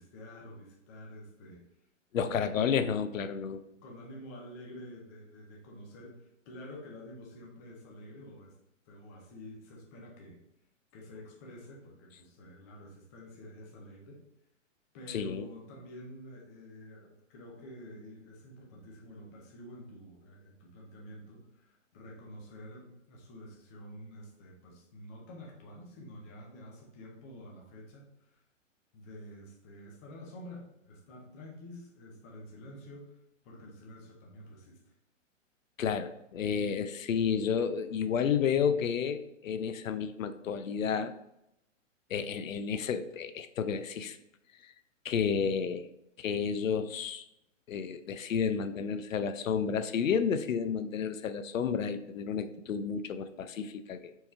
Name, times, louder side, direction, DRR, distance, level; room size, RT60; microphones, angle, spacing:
voice 1, 0.0-1.6 2.2-3.0 3.8-8.5 8.9-10.4 10.9-14.2 14.9-28.4 28.9-33.2 33.4-34.8, left 1 dB, 15° left, -2 dB, 0.4 m, -49 dB
voice 2, 2.1-3.6 15.1-15.5 35.8-41.1 42.1-44.2 44.6-44.7 45.0-45.9 46.2-47.2 47.7-54.1, left 7 dB, 90° left, 11 dB, 0.5 m, -31 dB
4.5 x 3.0 x 3.3 m, 0.84 s
hypercardioid pair, 135°, 38 cm